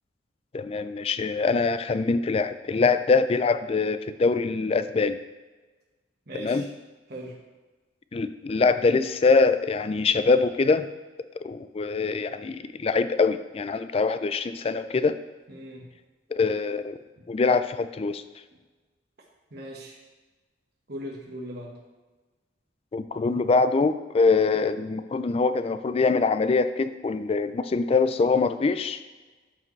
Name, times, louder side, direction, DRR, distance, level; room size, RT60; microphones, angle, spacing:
voice 1, 0.5-5.2 6.3-6.7 8.1-10.9 11.4-15.2 16.3-17.0 17.3-18.2 22.9-29.0, left 4 dB, 30° left, 11 dB, 0.3 m, -23 dB
voice 2, 6.3-6.7 7.1-7.3 15.5-15.9 19.5-19.9 20.9-21.7, equal, 55° right, -2 dB, 1.3 m, -39 dB
13.0 x 4.9 x 3.2 m, 1.2 s
head